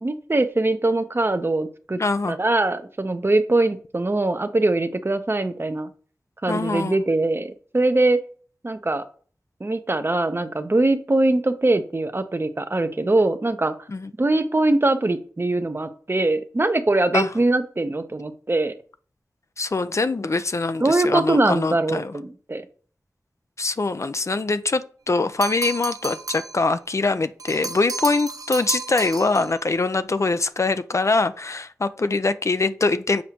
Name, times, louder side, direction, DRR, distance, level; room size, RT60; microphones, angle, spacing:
voice 1, 0.0-2.0 2.3-5.9 6.4-8.2 8.6-9.0 9.6-13.7 14.2-18.7 20.8-22.6, right 2 dB, 40° right, 0.8 m, -22 dB
voice 2, 2.0-2.4 6.5-6.9 13.9-14.1 17.1-17.3 19.6-22.1 23.6-33.2, left 3 dB, 55° left, 0.5 m, -23 dB
sound 1, 25.4-26.6 27.4-29.6, right 4 dB, 85° right, 0.5 m, -32 dB
7.2 x 4.8 x 2.9 m
cardioid pair, 45°, 6 cm